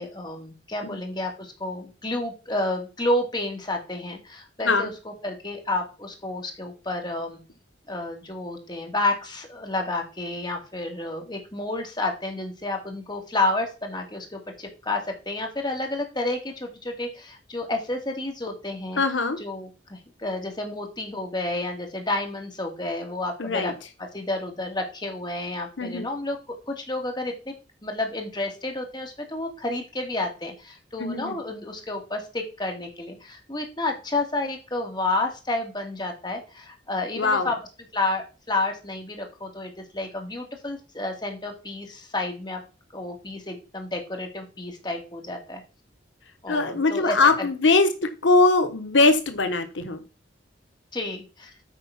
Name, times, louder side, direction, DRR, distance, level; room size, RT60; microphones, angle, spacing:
voice 1, 0.0-7.4 7.9-19.0 19.4-23.7 24.1-26.4 26.7-27.5 27.8-37.6 37.9-42.6 42.9-45.6 46.4-47.5 50.9-51.5, left 2 dB, 25° left, 2 dB, 2.2 m, -30 dB
voice 2, 19.0-19.4 23.4-23.7 25.8-26.1 31.0-31.4 37.2-37.5 46.5-47.9 48.2-50.0, left 3 dB, 85° left, 8 dB, 1.2 m, -21 dB
8.9 x 4.6 x 5.8 m, 0.32 s
head